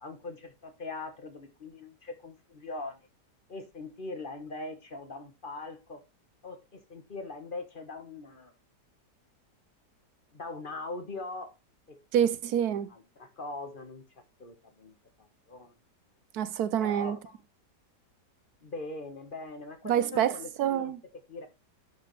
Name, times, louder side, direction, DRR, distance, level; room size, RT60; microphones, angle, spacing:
voice 1, 0.0-3.0 3.5-6.0 6.4-8.5 10.3-11.5 11.9-12.0 12.9-14.0 14.4-15.7 16.8-17.4 18.6-21.5, left 3 dB, 35° left, 1.1 m, -41 dB
voice 2, 12.1-12.9 16.3-17.2 19.8-21.0, right 10 dB, 70° right, 1.1 m, -27 dB
11.0 x 4.9 x 3.0 m
omnidirectional pair, 1.8 m